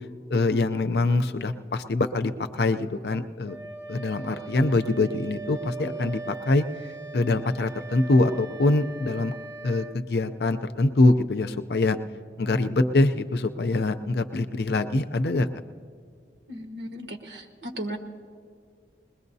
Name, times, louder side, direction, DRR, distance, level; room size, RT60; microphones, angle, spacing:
voice 1, 0.3-3.6 3.9-6.6 7.1-9.3 9.6-12.0 12.4-15.5, left 2 dB, 65° left, 9 dB, 0.5 m, -24 dB
Wind instrument woodwind instrument, 3.5-10.0, right 4 dB, 15° right, 0.7 m, -40 dB
voice 2, 16.5-18.0, right 1 dB, 85° right, 4 dB, 1.4 m, -36 dB
21.5 x 20.0 x 2.7 m, 2.2 s
head